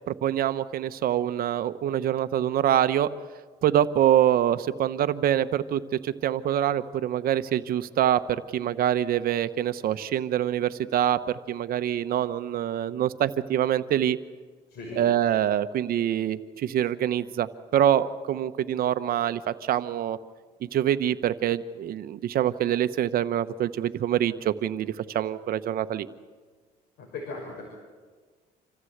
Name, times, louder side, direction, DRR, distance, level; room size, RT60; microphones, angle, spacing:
voice 1, 0.1-3.1 3.6-11.2 11.5-14.2 15.0-20.2 20.7-26.1, right 11 dB, 60° right, 12 dB, 1.0 m, -25 dB
voice 2, 14.7-15.1 27.0-27.6, left 3 dB, 75° left, 0 dB, 5.7 m, -37 dB
27.0 x 15.0 x 8.0 m, 1.5 s
cardioid pair, 110°, 17 cm